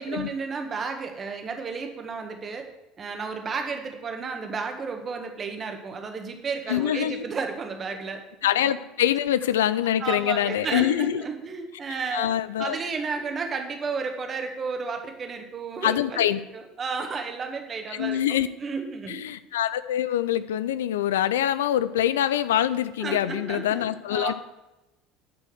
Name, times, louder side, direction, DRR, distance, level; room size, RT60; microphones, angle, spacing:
voice 1, 0.0-2.7 3.0-8.2 10.0-12.3 12.6-16.2 16.5-19.2 23.0-24.3, right 4 dB, 35° right, 4 dB, 1.6 m, -32 dB
voice 2, 6.7-7.2 8.4-11.2 12.1-12.8 15.8-16.4 17.9-18.5 19.1-24.3, left 11 dB, 75° left, 15 dB, 0.4 m, -24 dB
9.9 x 5.7 x 6.3 m, 1.0 s
hypercardioid pair, 65°, 0 cm